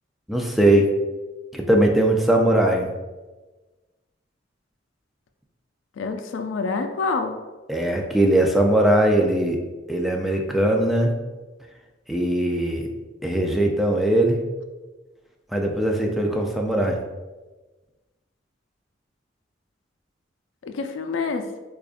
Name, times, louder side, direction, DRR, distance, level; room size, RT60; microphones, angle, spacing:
voice 1, 0.3-0.9 1.5-2.9 7.7-9.6 9.9-11.1 12.1-12.9 13.2-14.4 15.5-17.0, right 1 dB, ahead, 1 dB, 0.4 m, -20 dB
voice 2, 6.0-7.4 20.6-21.5, left 4 dB, 90° left, 6 dB, 0.4 m, -27 dB
4.9 x 2.3 x 2.4 m, 1.2 s
head